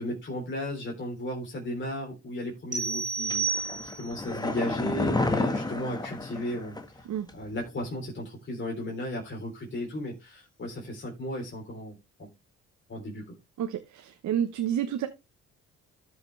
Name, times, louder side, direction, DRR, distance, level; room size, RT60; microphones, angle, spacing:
voice 1, 0.0-3.7 3.9-6.8 7.3-12.3 12.9-13.2, left 1 dB, 40° left, 3.5 m, -35 dB
sound 1, 2.7-4.3, right 5 dB, 25° right, 3.1 m, -31 dB
sound 2, 3.3-7.0 7.3-7.4, left 2 dB, 15° left, 1.4 m, -30 dB
voice 2, 13.6-15.1, right 9 dB, 70° right, 1.1 m, -29 dB
13.0 x 6.0 x 3.2 m
cardioid pair, 90°, 30 cm